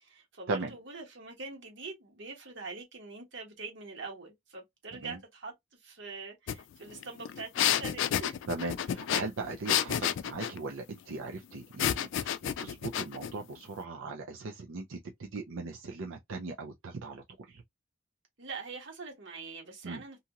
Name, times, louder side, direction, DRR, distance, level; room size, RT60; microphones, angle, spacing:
voice 1, 0.0-8.4 10.1-10.2 18.4-20.2, right 4 dB, 65° right, 1.4 m, -44 dB
sound 1, 6.5-6.6 6.9-10.6 11.8-13.3, left 10 dB, 70° left, 0.3 m, -30 dB
voice 2, 8.5-12.3 12.6-15.0 15.3-17.2 19.8-20.0, right 3 dB, 90° right, 0.5 m, -38 dB
2.8 x 2.7 x 2.4 m
head